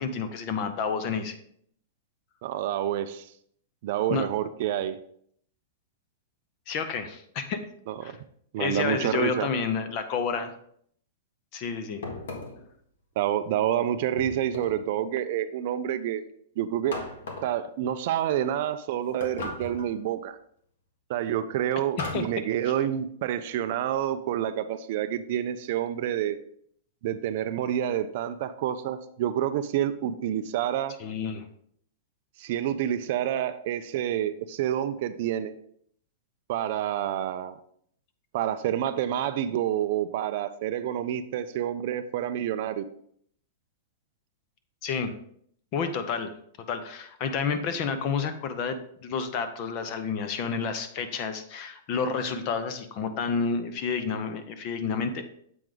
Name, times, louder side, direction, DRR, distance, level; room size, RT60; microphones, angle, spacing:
voice 1, 0.0-1.4 4.1-4.2 6.7-7.6 8.0-8.1 8.6-10.6 11.5-12.0 22.1-22.2 31.0-31.5 44.8-45.1 45.7-46.3 46.7-55.3, left 5 dB, 30° left, 9 dB, 0.6 m, -30 dB
voice 2, 2.4-3.3 3.8-5.0 7.9-8.2 8.5-9.5 13.2-16.2 16.6-17.0 17.4-20.4 21.1-26.4 27.0-31.0 32.4-35.5 36.5-37.5 38.3-42.8, right 11 dB, 45° right, 11 dB, 0.4 m, -28 dB
sound 1, 12.0-12.7 14.2-14.9 16.9-17.6 19.2-19.9 22.0-22.4, left 2 dB, 85° left, 1.7 m, -37 dB
7.7 x 4.6 x 3.8 m, 0.66 s
supercardioid pair, 175°, 0 cm